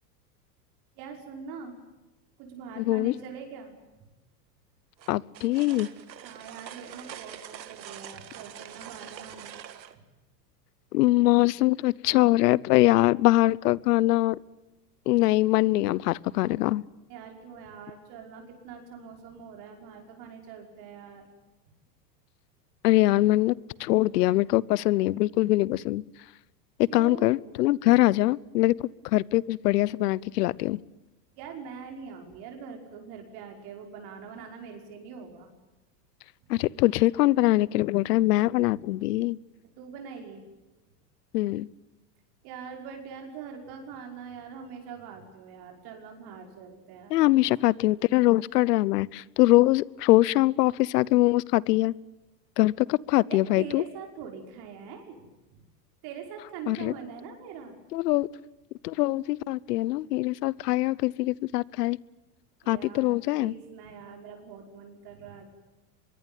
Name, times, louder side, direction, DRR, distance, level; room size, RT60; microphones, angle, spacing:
voice 1, 1.0-1.8 2.4-3.8 6.2-9.5 17.1-21.3 26.9-27.4 31.4-35.5 38.7-38.8 39.8-40.4 42.4-47.4 53.3-55.6 56.0-57.7 62.6-65.5, right 6 dB, 50° right, 3 dB, 5.8 m, -43 dB
voice 2, 2.8-3.1 5.1-5.9 10.9-14.4 15.1-16.8 22.8-23.5 23.8-26.0 26.8-28.7 29.0-30.8 36.5-39.4 41.3-41.7 47.1-51.9 52.6-53.8 56.7-56.9 57.9-58.3 58.8-62.0 62.7-63.5, left 17 dB, 70° left, 24 dB, 0.9 m, -23 dB
sound 1, 5.0-9.9, right 10 dB, 90° right, 2.0 m, -44 dB
24.5 x 22.0 x 9.2 m, 1.1 s
hypercardioid pair, 110°, 49 cm